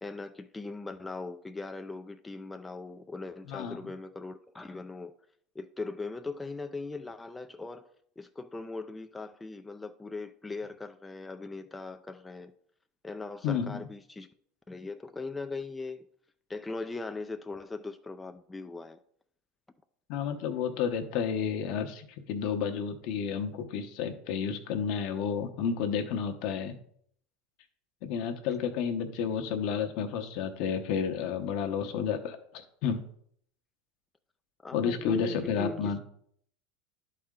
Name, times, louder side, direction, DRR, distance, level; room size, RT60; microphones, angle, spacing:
voice 1, 0.0-5.1 5.5-7.9 8.2-12.5 13.0-14.3 14.7-16.1 16.5-19.0 34.6-36.0, left 3 dB, 10° left, 0.4 m, -39 dB
voice 2, 3.5-3.8 13.4-13.8 20.1-26.8 28.0-33.1 34.7-36.0, left 7 dB, 60° left, 1.0 m, -31 dB
11.0 x 4.2 x 3.8 m
supercardioid pair, 115°, 0 cm